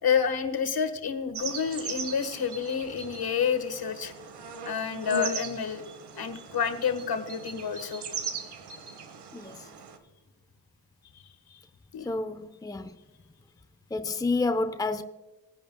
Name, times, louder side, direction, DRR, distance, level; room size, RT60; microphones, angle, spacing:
voice 1, 0.0-4.1 4.6-5.8 6.1-8.0 11.9-12.1, left 7 dB, 65° left, 1.6 m, -29 dB
sound 1, 1.3-10.0, right 5 dB, 80° right, 1.3 m, -39 dB
voice 2, 9.3-9.6 12.0-13.0 13.9-15.0, left 3 dB, 10° left, 0.7 m, -29 dB
19.0 x 10.5 x 2.3 m
cardioid pair, 55°, 40 cm